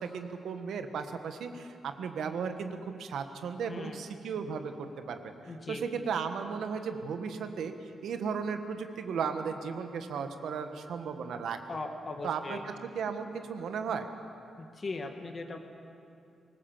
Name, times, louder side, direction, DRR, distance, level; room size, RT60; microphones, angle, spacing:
voice 1, 0.0-5.3 5.7-11.6 12.2-14.1, right 6 dB, 80° right, 7 dB, 1.5 m, -35 dB
voice 2, 3.7-4.0 5.5-5.8 11.7-12.6 14.6-15.6, left 3 dB, 30° left, 4 dB, 1.9 m, -39 dB
24.0 x 20.0 x 7.3 m, 2.6 s
wide cardioid pair, 165°, 0 cm